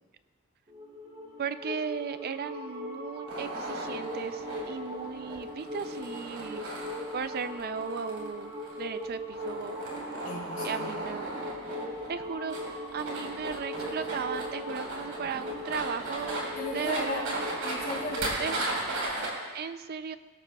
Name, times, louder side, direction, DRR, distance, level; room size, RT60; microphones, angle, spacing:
sound 1, 0.7-18.3, left 1 dB, 25° right, 1.4 m, -40 dB
voice 1, 1.4-6.6 7.1-9.8 10.6-11.4 12.1-16.4 16.7-17.4 18.4-18.6 19.5-20.2, right 6 dB, 45° right, 11 dB, 0.4 m, -36 dB
sound 2, 3.3-19.3, right 2 dB, 70° right, 4.4 m, -37 dB
voice 2, 10.2-11.0 16.5-17.3 17.6-18.6, left 2 dB, 40° left, -3 dB, 3.8 m, -36 dB
22.5 x 13.0 x 2.3 m, 1.4 s
head